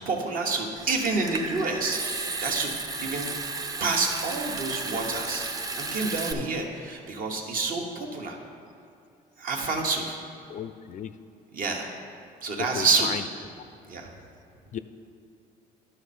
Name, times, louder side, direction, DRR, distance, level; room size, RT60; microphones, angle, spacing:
voice 1, 0.0-2.0 2.4-2.7 3.0-3.5 3.8-5.4 5.7-8.4 9.4-10.2 11.5-11.9 12.4-13.2 13.8-14.1, right 3 dB, 55° right, 1 dB, 1.2 m, -28 dB
Water tap faucet / Sink (filling or washing) / Trickle dribble, 0.8-6.3, right 3 dB, 20° right, 0.5 m, -33 dB
voice 2, 10.5-11.1 12.7-13.2 14.7-14.8, left 9 dB, 50° left, 12 dB, 0.4 m, -34 dB
11.5 x 5.5 x 4.3 m, 2.5 s
cardioid pair, 110°, 17 cm